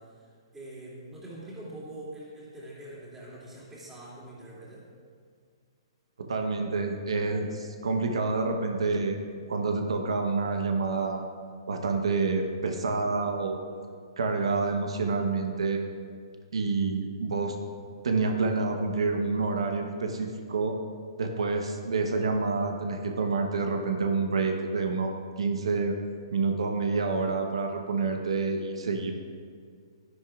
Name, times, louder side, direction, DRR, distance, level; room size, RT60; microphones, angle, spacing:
voice 1, 0.0-4.9, right 1 dB, 10° right, -8 dB, 2.7 m, -44 dB
voice 2, 6.2-9.2 9.5-11.3 11.7-13.6 14.2-15.8 16.5-17.6 18.0-20.8 21.2-25.1 25.4-26.0 26.3-29.1, right 4 dB, 90° right, 3 dB, 1.0 m, -28 dB
11.5 x 11.0 x 2.5 m, 2.1 s
hypercardioid pair, 155°, 3 cm